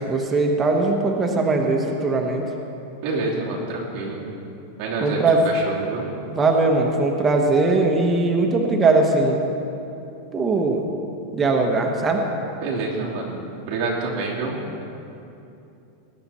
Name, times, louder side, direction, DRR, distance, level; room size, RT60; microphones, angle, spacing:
voice 1, 0.0-2.4 5.0-5.5 6.3-9.4 10.3-10.9 11.3-12.2, right 3 dB, 15° right, 1 dB, 1.1 m, -20 dB
voice 2, 3.0-4.2 4.8-5.2 5.4-6.1 12.6-13.4 13.7-14.8, right 3 dB, 45° right, -4 dB, 2.9 m, -27 dB
20.0 x 9.5 x 4.3 m, 2.8 s
supercardioid pair, 150°, 0 cm